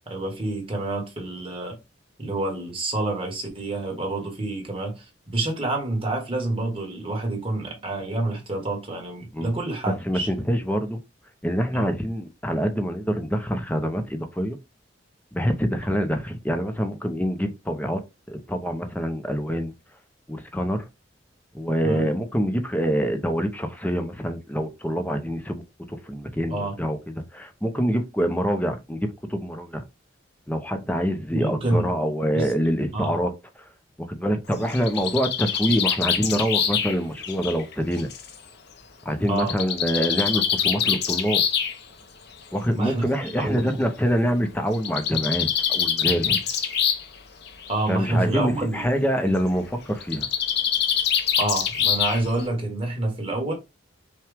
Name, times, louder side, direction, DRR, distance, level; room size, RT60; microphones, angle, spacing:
voice 1, 0.0-1.8 2.2-10.3 11.7-12.0 21.8-22.1 26.5-26.8 31.3-31.9 32.3-32.5 32.9-33.2 34.5-34.6 39.3-39.5 42.7-43.8 47.7-48.8 51.4-53.5, right 2 dB, 30° right, 1.6 m, -28 dB
voice 2, 10.0-11.0 11.4-14.6 15.3-19.7 20.3-20.9 21.5-25.6 25.9-27.0 27.3-29.8 30.5-33.3 33.6-33.7 34.0-38.1 39.0-41.4 42.5-46.4 47.9-50.3, equal, 10° left, 0.6 m, -25 dB
Bird, 34.5-38.3 39.4-41.7 42.8-42.9 43.3-43.4 43.6-43.7 44.7-47.1 47.4-47.9 50.0-52.4, left 8 dB, 60° left, 0.7 m, -25 dB
5.7 x 2.3 x 3.4 m
head